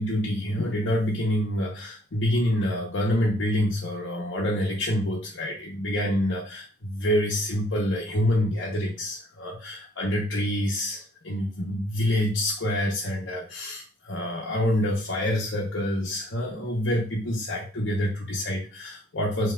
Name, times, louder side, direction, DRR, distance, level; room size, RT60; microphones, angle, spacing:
voice 1, 0.0-19.5, left 1 dB, 75° left, -4 dB, 0.8 m, -27 dB
5.9 x 2.9 x 2.3 m, 0.36 s
head